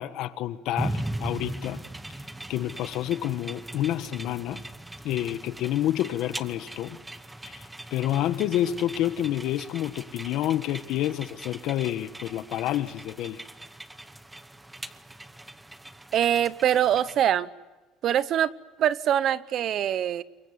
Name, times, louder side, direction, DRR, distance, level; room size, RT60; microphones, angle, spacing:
voice 1, 0.0-1.8 2.5-4.6 5.0-7.0 7.4-7.6 7.9-13.4, left 12 dB, 65° left, 1.5 m, -28 dB
sound 1, 0.8-17.2, right 1 dB, 5° right, 1.0 m, -39 dB
voice 2, 16.1-17.5 18.0-18.5 18.8-20.2, right 10 dB, 45° right, 0.9 m, -23 dB
28.0 x 23.0 x 8.2 m
cardioid pair, 145°, 0 cm